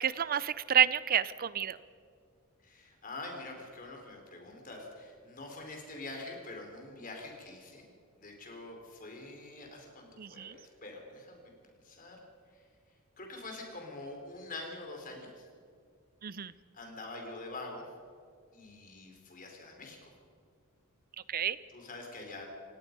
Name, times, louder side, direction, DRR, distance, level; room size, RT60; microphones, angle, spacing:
voice 1, 0.0-1.8 10.2-10.5 16.2-16.5 21.3-21.6, right 9 dB, 40° right, 17 dB, 0.5 m, -29 dB
voice 2, 2.6-7.8 8.2-11.5 11.8-12.2 12.5-12.6 13.2-15.3 16.3-16.4 16.7-17.8 18.5-20.1 21.7-22.4, left 2 dB, 40° left, 1 dB, 4.3 m, -45 dB
28.5 x 17.5 x 5.4 m, 2.2 s
head